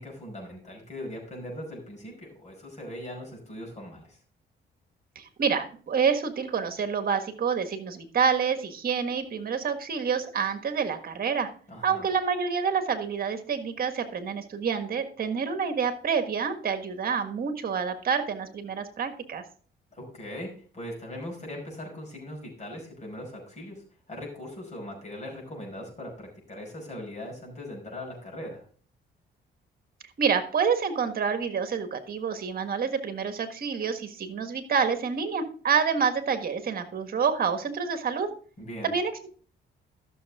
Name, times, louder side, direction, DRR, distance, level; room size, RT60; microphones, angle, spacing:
voice 1, 0.0-4.2 11.7-12.1 19.9-28.6 38.6-38.9, left 1 dB, 35° left, 0 dB, 5.4 m, -40 dB
voice 2, 5.1-11.5 11.8-19.4 30.2-38.3 38.8-39.3, right 6 dB, 50° right, 8 dB, 1.6 m, -28 dB
13.0 x 6.8 x 3.6 m, 0.43 s
cardioid pair, 90°, 20 cm